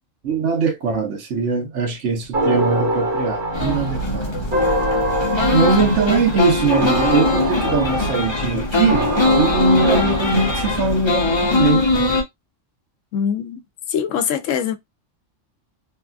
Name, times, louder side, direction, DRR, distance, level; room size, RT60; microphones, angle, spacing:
voice 1, 0.2-4.5 5.5-12.0, right 5 dB, 75° right, 1.2 m, -21 dB
sound 1, 2.3-11.0, equal, 45° right, 1.2 m, -24 dB
sound 2, 3.5-12.2, left 2 dB, 35° left, 0.5 m, -21 dB
voice 2, 13.1-13.6 13.9-14.8, left 8 dB, 80° left, 0.9 m, -22 dB
3.4 x 2.4 x 2.2 m
omnidirectional pair, 1.3 m